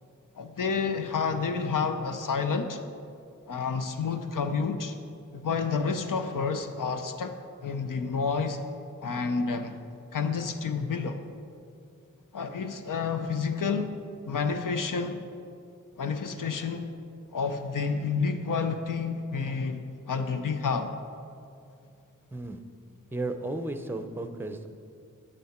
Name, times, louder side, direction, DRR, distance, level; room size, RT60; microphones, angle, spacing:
voice 1, 0.4-2.8 3.5-5.0 5.3-7.4 7.6-8.6 9.0-9.8 10.1-11.2 12.3-14.0 14.2-15.2 16.0-16.9 17.3-20.9, left 5 dB, 90° left, 7 dB, 0.7 m, -29 dB
voice 2, 23.1-24.7, right 2 dB, 5° right, 8 dB, 0.5 m, -34 dB
9.5 x 9.3 x 4.3 m, 2.4 s
wide cardioid pair, 95°, 31 cm